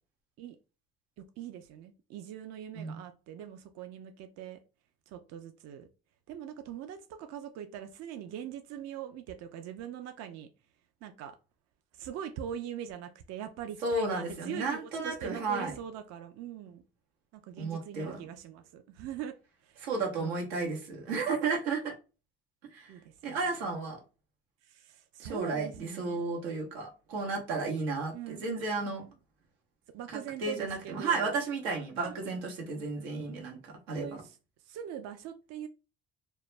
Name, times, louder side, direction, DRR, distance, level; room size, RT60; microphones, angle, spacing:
voice 1, 1.2-4.6 5.1-5.9 6.3-10.5 11.0-11.4 11.9-16.8 17.3-19.9 20.2-20.5 22.9-23.4 24.6-26.2 28.1-29.1 29.9-31.3 32.0-32.5 33.9-34.4 34.6-35.7, right 9 dB, 55° right, 0.4 m, -42 dB
voice 2, 13.8-15.7 17.6-18.2 19.8-21.9 22.7-22.9 23.2-24.0 25.2-29.0 30.1-34.1, right 3 dB, 90° right, 0.8 m, -33 dB
2.2 x 2.0 x 3.1 m
hypercardioid pair, 70°, 31 cm